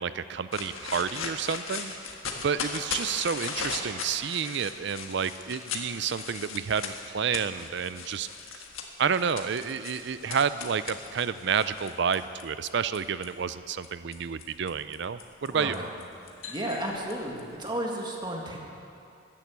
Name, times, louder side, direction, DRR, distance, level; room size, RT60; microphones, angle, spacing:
voice 1, 0.0-1.9 2.4-8.3 8.5-8.6 9.0-15.7, right 6 dB, 60° right, 14 dB, 0.4 m, -30 dB
sound 1, 0.5-13.3 13.8-17.7, left 5 dB, 85° left, 1.6 m, -38 dB
voice 2, 15.5-15.9 16.5-18.6, right 1 dB, 20° right, 0 dB, 1.8 m, -33 dB
14.0 x 10.5 x 8.1 m, 2.6 s
head